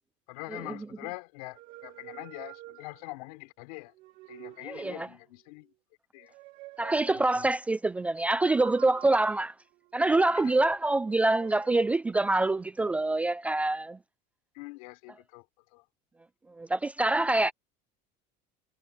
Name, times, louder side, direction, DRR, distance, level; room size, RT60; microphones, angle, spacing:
voice 1, 0.3-3.9 4.3-5.7 6.1-6.3 7.1-7.5 10.3-10.6 14.5-15.4 15.7-15.8, left 24 dB, 85° left, 4.2 m, -44 dB
sound 1, 1.5-3.3 3.9-5.2 6.2-7.5 8.6-10.4 11.0-12.0, right 18 dB, 50° right, 2.4 m, -49 dB
voice 2, 4.6-5.1 6.8-9.5 9.9-14.0 16.6-17.5, right 2 dB, 10° right, 0.3 m, -25 dB
cardioid pair, 175°, 18 cm